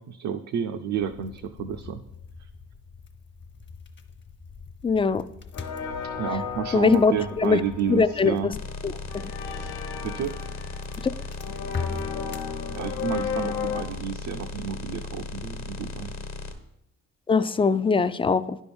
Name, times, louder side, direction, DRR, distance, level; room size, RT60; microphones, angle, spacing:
voice 1, 0.0-2.0 6.2-8.5 10.0-10.4 12.7-16.1, right 8 dB, 65° right, 5 dB, 0.6 m, -31 dB
sound 1, 1.0-14.0, left 4 dB, 40° left, 0.9 m, -42 dB
voice 2, 4.8-5.2 6.7-7.6 7.9-8.6 8.8-9.3 17.3-18.6, left 5 dB, 20° left, 15 dB, 0.3 m, -22 dB
sound 2, 5.5-13.8, left 6 dB, 90° left, 0.9 m, -35 dB
sound 3, 8.5-16.5, left 3 dB, 60° left, 1.2 m, -37 dB
9.9 x 3.6 x 6.9 m, 0.83 s
cardioid pair, 90°, 30 cm